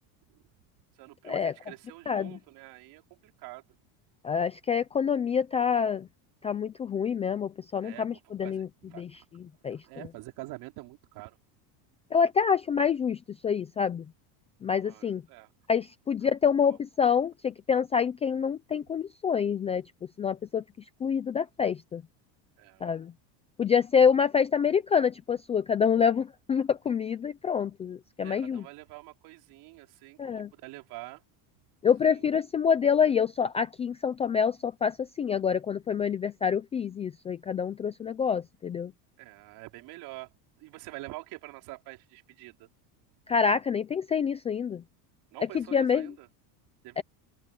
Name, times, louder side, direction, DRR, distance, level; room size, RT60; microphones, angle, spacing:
voice 1, 1.0-3.6 7.8-8.1 8.4-9.0 9.7-11.4 14.7-15.5 16.6-16.8 22.6-22.9 28.2-30.2 30.5-31.2 32.0-32.3 39.2-40.3 40.6-42.7 45.3-46.3 46.8-47.0, right 20 dB, 55° right, 4.9 m, -46 dB
voice 2, 2.1-2.4 4.2-6.1 6.4-8.7 9.0-9.8 12.1-14.0 14.6-15.2 15.7-19.8 20.2-20.6 21.0-22.0 22.8-23.1 23.6-28.6 30.2-30.5 31.8-38.9 43.3-44.8 45.5-46.1 47.0-47.1, left 7 dB, 15° left, 0.4 m, -27 dB
cardioid pair, 160°, 45 cm